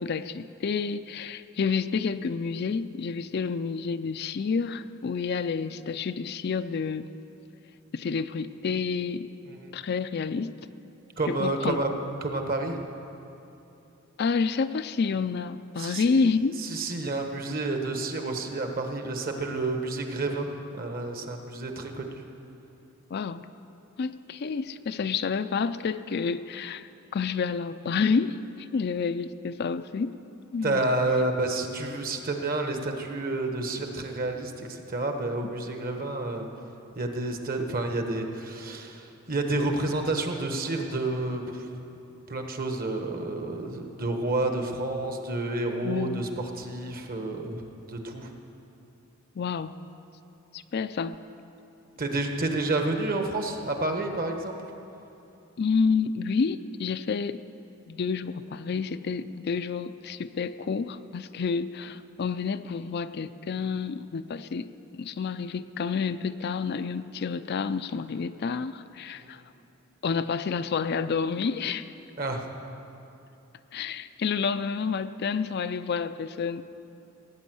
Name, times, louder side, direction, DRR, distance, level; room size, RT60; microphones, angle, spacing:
voice 1, 0.0-7.1 7.9-9.3 9.7-10.6 11.3-11.8 14.2-16.6 23.1-23.5 24.0-30.2 30.5-30.8 35.4-35.5 45.8-46.3 49.4-49.8 50.5-51.2 55.6-57.4 57.9-64.7 64.9-69.4 70.0-71.9 73.7-76.6, left 5 dB, 50° left, 12 dB, 0.4 m, -29 dB
voice 2, 11.2-11.9 12.2-12.8 15.8-16.2 16.6-22.2 30.6-36.5 36.9-41.7 42.3-47.6 47.9-48.3 52.0-54.6 69.1-69.4 72.2-72.5, right 2 dB, 45° right, 4 dB, 1.3 m, -30 dB
16.5 x 9.0 x 7.8 m, 2.9 s
head